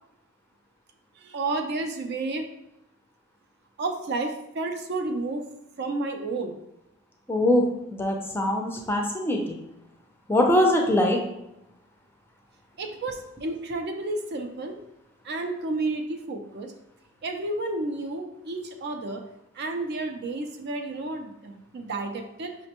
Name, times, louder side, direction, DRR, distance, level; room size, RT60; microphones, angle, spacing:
voice 1, 1.2-2.5 3.8-5.4 5.8-6.6 12.8-14.8 15.2-16.7 17.2-19.2 19.5-22.6, right 2 dB, 55° right, 5 dB, 0.4 m, -31 dB
voice 2, 7.3-7.6 7.9-9.6 10.3-11.2, left 1 dB, 10° left, 1 dB, 0.4 m, -22 dB
5.1 x 2.1 x 2.9 m, 0.87 s
head